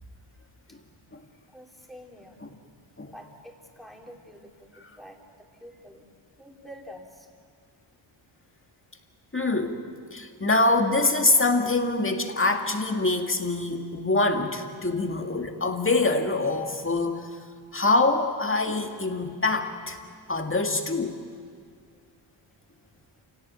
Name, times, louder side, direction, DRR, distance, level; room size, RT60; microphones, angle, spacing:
voice 1, 1.5-2.4 3.1-5.2 5.6-6.0 6.4-7.1, equal, ahead, 0 dB, 3.0 m, -47 dB
voice 2, 9.3-9.8 10.1-17.2 17.7-20.0 20.3-21.2, left 2 dB, 25° left, 4 dB, 2.0 m, -24 dB
29.0 x 17.5 x 9.2 m, 2.1 s
wide cardioid pair, 120°, 50 cm